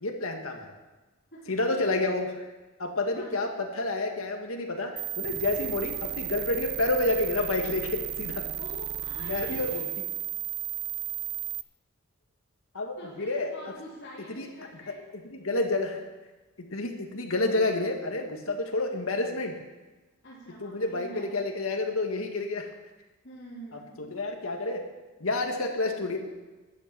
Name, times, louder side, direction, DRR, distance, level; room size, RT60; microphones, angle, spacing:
voice 1, 0.0-0.7 1.5-2.3 2.8-8.5 9.2-9.8 12.7-13.5 14.3-14.5 15.4-16.0 16.7-19.6 20.6-22.7 24.0-24.8 25.2-26.2, left 2 dB, 90° left, 3 dB, 1.8 m, -29 dB
voice 2, 1.3-1.8 3.1-3.4 8.6-9.8 13.0-15.0 20.2-21.3 23.2-24.1, equal, 55° left, -10 dB, 3.5 m, -46 dB
sound 1, 5.0-11.6, right 12 dB, 50° right, 0.6 m, -34 dB
13.0 x 8.8 x 7.5 m, 1.2 s
head